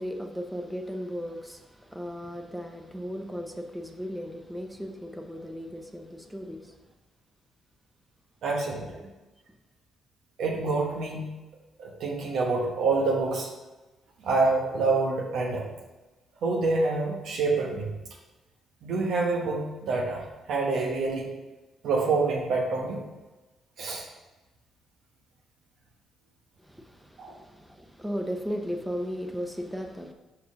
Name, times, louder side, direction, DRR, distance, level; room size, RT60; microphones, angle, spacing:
voice 1, 0.0-6.7 26.6-30.1, equal, 5° right, 3 dB, 0.8 m, -36 dB
voice 2, 8.4-8.9 10.4-11.3 11.8-13.5 14.2-15.7 16.4-17.9 18.8-21.3 21.8-23.0 23.8-24.0 27.2-27.3, right 3 dB, 75° right, -1 dB, 1.0 m, -27 dB
5.4 x 4.7 x 5.1 m, 1.1 s
cardioid pair, 90°, 0 cm